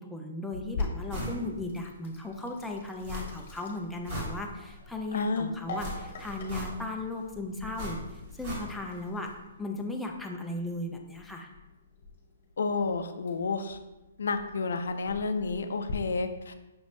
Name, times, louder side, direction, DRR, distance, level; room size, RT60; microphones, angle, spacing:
voice 1, 0.0-9.3 9.6-11.5, left 2 dB, 5° left, 1 dB, 0.4 m, -36 dB
Sink (filling or washing), 0.5-15.9, left 3 dB, 45° left, 0.9 m, -44 dB
sound 1, 1.1-1.4 1.8-1.9 3.0-3.6 3.9-4.8 5.8-7.0 7.7-9.0 9.3-9.4, equal, 35° right, 1.3 m, -38 dB
voice 2, 5.1-5.5 12.6-13.8 14.2-16.5, left 4 dB, 80° left, 8 dB, 0.4 m, -30 dB
6.0 x 2.6 x 3.2 m, 1.0 s
hypercardioid pair, 160°, 0 cm